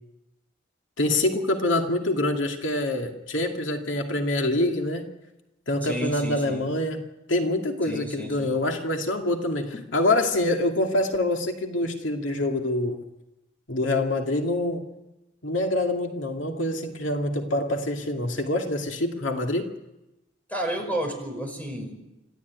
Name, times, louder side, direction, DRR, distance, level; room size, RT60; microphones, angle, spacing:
voice 1, 1.0-5.1 5.7-7.0 7.3-13.0 13.7-14.8 15.4-19.7, left 1 dB, 90° left, 3 dB, 2.3 m, -25 dB
voice 2, 5.8-6.6 7.9-8.5 20.5-21.9, right 1 dB, 10° left, 3 dB, 5.6 m, -31 dB
26.0 x 15.0 x 9.5 m, 0.96 s
head